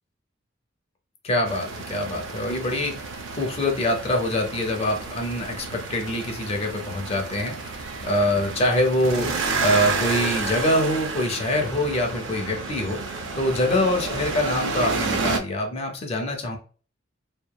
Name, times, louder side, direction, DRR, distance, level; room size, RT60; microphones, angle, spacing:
voice 1, 1.2-16.6, left 1 dB, 30° left, 3 dB, 0.4 m, -25 dB
sound 1, 1.5-15.4, right 4 dB, 75° right, 0.4 m, -30 dB
2.8 x 2.2 x 2.2 m, 0.40 s
head